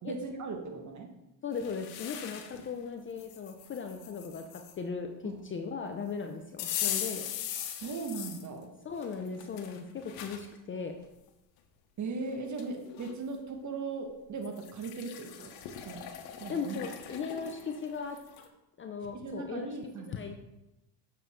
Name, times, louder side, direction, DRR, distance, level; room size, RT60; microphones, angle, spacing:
voice 1, 0.0-1.1 5.2-5.4 7.7-8.7 12.0-15.5 15.8-16.0 16.4-16.8 19.1-20.1, right 4 dB, 35° right, 3 dB, 1.6 m, -38 dB
voice 2, 1.4-7.2 8.8-11.0 16.5-18.2 18.8-20.3, left 5 dB, 25° left, 5 dB, 0.5 m, -38 dB
sound 1, 1.5-2.7 3.2-4.7 6.6-8.5 9.0-10.4 11.0-11.1 12.2-12.3 12.6-13.1 14.4-18.5, left 10 dB, 80° left, 1.1 m, -40 dB
7.0 x 6.7 x 3.7 m, 0.95 s
supercardioid pair, 105°, 49 cm